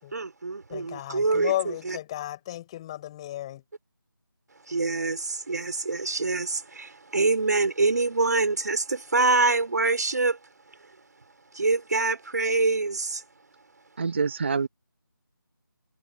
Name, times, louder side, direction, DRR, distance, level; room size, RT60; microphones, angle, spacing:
voice 1, 0.1-2.0 4.7-10.4 11.5-13.2, right 3 dB, 50° right, 4.3 m, -25 dB
voice 2, 0.7-3.6, left 14 dB, 15° left, 6.4 m, -33 dB
voice 3, 14.0-14.7, right 5 dB, 30° right, 1.0 m, -26 dB
figure-of-eight pair, 165°, 12 cm